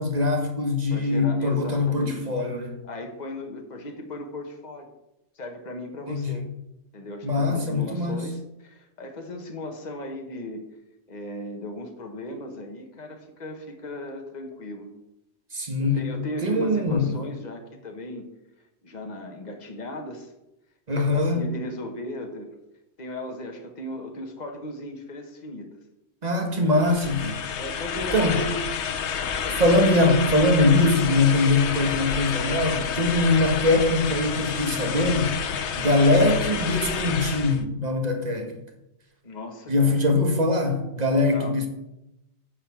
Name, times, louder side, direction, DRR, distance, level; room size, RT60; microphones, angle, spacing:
voice 1, 0.0-2.8 6.1-6.4 7.2-8.2 15.5-16.1 16.4-17.1 20.9-21.4 26.2-27.4 28.1-28.4 29.5-35.4 35.7-38.5 39.7-41.7, left 2 dB, 40° right, 1.6 m, -22 dB
voice 2, 0.9-2.3 2.8-4.9 5.3-6.5 6.9-10.6 11.1-14.9 15.8-18.2 18.8-20.3 20.9-22.5 23.0-25.7 27.6-28.9 29.4-29.6 35.7-36.0 39.2-40.0 41.3-41.5, left 1 dB, 40° left, 1.5 m, -37 dB
sound 1, 26.7-37.6, left 7 dB, 75° left, 1.1 m, -29 dB
9.6 x 5.1 x 7.3 m
omnidirectional pair, 1.2 m